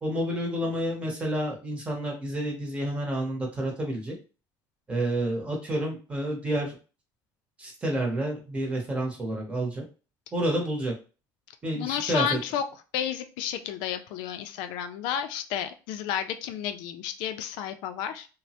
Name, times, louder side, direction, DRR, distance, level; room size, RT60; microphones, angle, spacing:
voice 1, 0.0-4.1 4.9-6.8 7.6-9.8 10.3-10.9 11.6-12.4, right 1 dB, 15° right, 0 dB, 0.7 m, -29 dB
voice 2, 11.7-12.6 12.9-18.3, left 9 dB, 90° left, 8 dB, 0.4 m, -31 dB
3.1 x 2.0 x 2.8 m, 0.34 s
cardioid pair, 180°, 8 cm